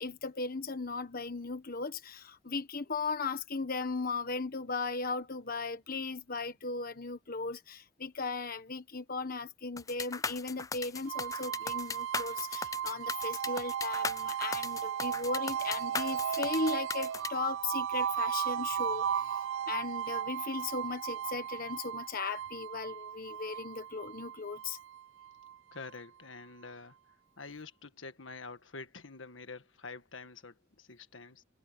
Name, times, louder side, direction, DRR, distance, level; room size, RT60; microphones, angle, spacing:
voice 1, 0.0-24.8, left 4 dB, 50° left, 1.3 m, -37 dB
sound 1, 9.8-17.3, left 5 dB, 15° left, 0.4 m, -38 dB
sound 2, 11.1-26.0, right 9 dB, 70° right, 0.4 m, -36 dB
voice 2, 25.7-31.4, left 4 dB, 75° left, 1.6 m, -47 dB
head